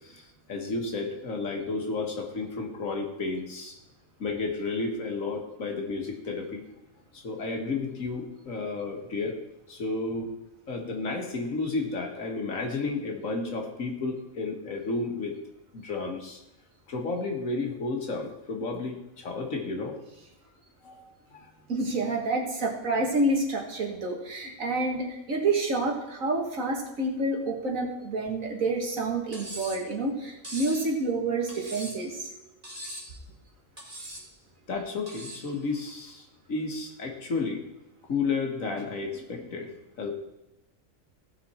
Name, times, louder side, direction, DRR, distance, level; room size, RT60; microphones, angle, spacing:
voice 1, 0.0-3.8 4.2-6.7 7.1-9.4 9.7-10.4 10.7-15.4 15.7-16.4 16.9-20.0 20.8-21.5 34.7-37.6 38.1-39.7 40.0-40.1, left 3 dB, 65° left, 2 dB, 1.9 m, -32 dB
voice 2, 21.7-32.3, right 2 dB, 65° right, 1 dB, 2.1 m, -28 dB
Cutlery silverware, 29.3-29.8 30.4-30.9 31.5-32.1 32.6-33.1 33.8-34.3 35.1-35.5, right 1 dB, 25° right, 2.3 m, -40 dB
16.5 x 5.7 x 4.3 m, 0.96 s
omnidirectional pair, 1.5 m